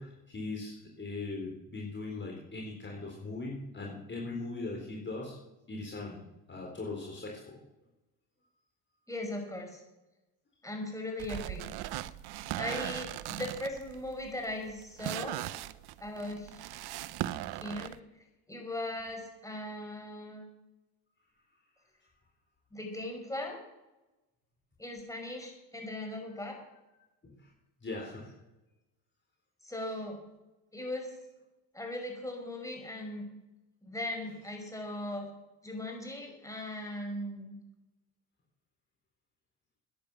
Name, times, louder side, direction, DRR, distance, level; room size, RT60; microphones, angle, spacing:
voice 1, 0.0-5.4 5.7-6.2 6.5-7.6 27.2-27.5 27.8-28.3, left 3 dB, 25° left, -1 dB, 4.0 m, -40 dB
voice 2, 9.1-9.8 10.6-11.7 12.6-15.4 16.0-17.1 17.5-18.0 18.5-20.4 22.7-23.6 24.8-26.6 29.6-30.2 30.7-31.1 31.7-33.3 33.8-35.3 35.6-37.6, left 1 dB, 10° left, 2 dB, 5.6 m, -39 dB
sound 1, 11.2-18.0, right 14 dB, 65° right, 0.8 m, -39 dB
14.0 x 10.0 x 7.1 m, 0.99 s
supercardioid pair, 80°, 42 cm